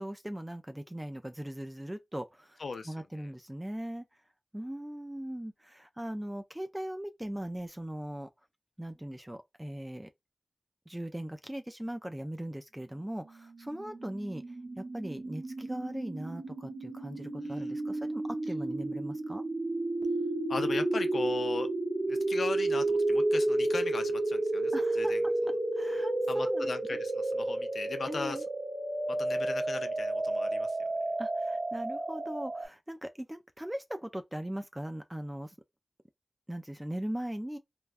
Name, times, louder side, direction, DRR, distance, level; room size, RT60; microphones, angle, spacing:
voice 1, 0.0-4.1 4.5-8.3 8.8-10.1 10.9-14.4 14.8-19.4 24.7-25.3 25.7-27.0 28.1-28.4 31.2-35.6 36.5-37.6, right 1 dB, 10° right, 0.3 m, -39 dB
voice 2, 2.6-3.3 17.4-17.7 20.5-21.7 22.1-25.2 26.3-28.4 29.1-30.8, left 4 dB, 90° left, 0.5 m, -38 dB
sound 1, 13.5-32.7, right 2 dB, 75° right, 0.7 m, -31 dB
3.3 x 2.2 x 2.4 m
wide cardioid pair, 60°, 0 cm